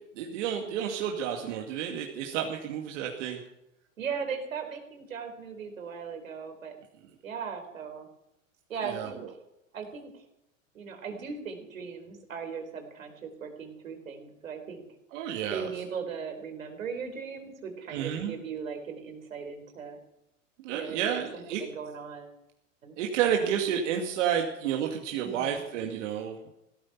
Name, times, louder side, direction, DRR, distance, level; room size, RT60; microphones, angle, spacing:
voice 1, 0.2-3.4 8.8-9.1 15.1-15.7 17.9-18.3 20.6-21.6 23.0-26.4, right 9 dB, 65° right, 1 dB, 2.4 m, -30 dB
voice 2, 4.0-6.8 7.2-8.1 8.7-9.4 9.7-10.1 10.7-14.8 15.5-20.0 20.7-22.3 22.8-23.0 25.2-25.6, right 6 dB, 85° right, 5 dB, 4.2 m, -38 dB
17.0 x 13.0 x 5.9 m, 0.85 s
hypercardioid pair, 105°, 39 cm